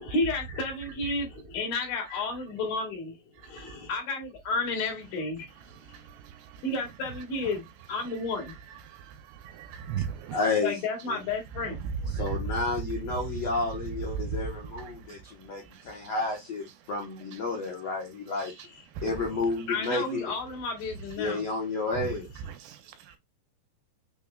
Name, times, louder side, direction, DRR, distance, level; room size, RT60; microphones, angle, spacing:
voice 1, 0.0-3.2 3.4-5.5 6.6-8.6 10.6-11.8 19.7-21.4, left 3 dB, 55° left, 3.2 m, -32 dB
voice 2, 9.4-10.4 12.1-12.4 19.0-19.1 22.0-22.1 22.6-22.8, right 8 dB, 80° right, 2.7 m, -34 dB
voice 3, 10.3-10.7 11.1-11.2 12.1-18.5 19.0-20.3 21.2-22.3, left 3 dB, 75° left, 1.5 m, -31 dB
6.6 x 3.5 x 2.3 m
omnidirectional pair, 5.0 m